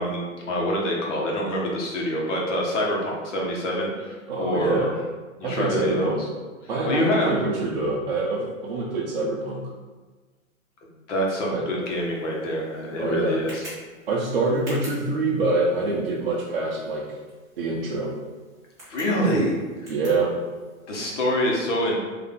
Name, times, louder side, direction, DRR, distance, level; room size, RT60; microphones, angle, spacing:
voice 1, 0.0-4.9 5.4-6.3 6.8-7.4 11.1-13.7 18.9-19.6 20.9-22.0, equal, 60° left, -2 dB, 1.2 m, -25 dB
voice 2, 4.3-4.9 5.4-6.2 6.7-9.6 11.5-11.6 13.0-13.4 14.1-17.0 17.6-18.1 19.9-20.3, right 3 dB, 45° right, -5 dB, 0.5 m, -25 dB
Tick, 11.8-21.0, equal, 10° right, 0.9 m, -48 dB
3.9 x 2.7 x 3.6 m, 1.3 s
hypercardioid pair, 175°, 41 cm